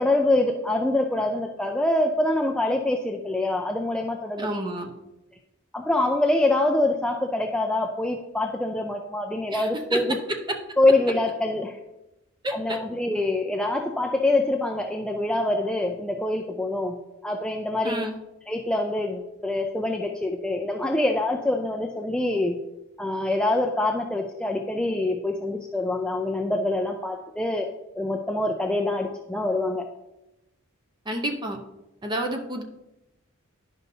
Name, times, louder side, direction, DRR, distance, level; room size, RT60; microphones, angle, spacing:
voice 1, 0.0-4.5 5.7-10.2 10.8-11.8 12.5-17.0 17.2-18.1 18.5-22.6 23.0-27.7 28.0-29.9, left 2 dB, 5° left, 1 dB, 0.3 m, -25 dB
voice 2, 4.4-4.9 9.5-10.0 12.4-12.8 17.8-18.2 31.1-31.6 32.0-32.6, right 1 dB, 20° right, 4 dB, 0.8 m, -29 dB
10.5 x 5.4 x 2.7 m, 0.95 s
head